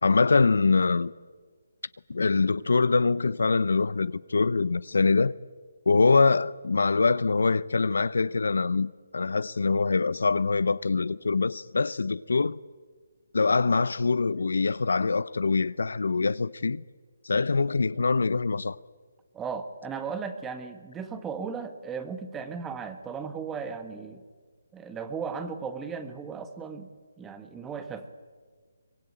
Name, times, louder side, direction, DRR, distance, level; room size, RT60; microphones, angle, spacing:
voice 1, 0.0-1.1 2.1-5.3 5.9-12.6 13.3-16.8 17.2-18.8, left 4 dB, 75° left, 0.8 m, -24 dB
voice 2, 19.3-24.2 24.7-26.9 27.2-28.1, right 5 dB, 10° right, 1.5 m, -36 dB
24.0 x 21.5 x 8.9 m
hypercardioid pair, 160°, 0 cm